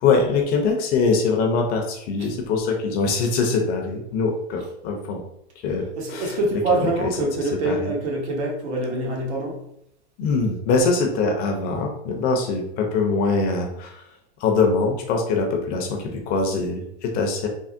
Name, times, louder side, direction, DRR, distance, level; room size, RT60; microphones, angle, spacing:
voice 1, 0.0-5.2 5.6-5.8 6.1-6.4 6.7-7.1 7.6-7.9 10.2-14.0 14.4-17.5, left 4 dB, 30° left, 2 dB, 0.4 m, -23 dB
voice 2, 6.0-9.6, right 2 dB, 85° right, -1 dB, 1.2 m, -25 dB
3.4 x 2.0 x 2.5 m, 0.76 s
supercardioid pair, 140°, 33 cm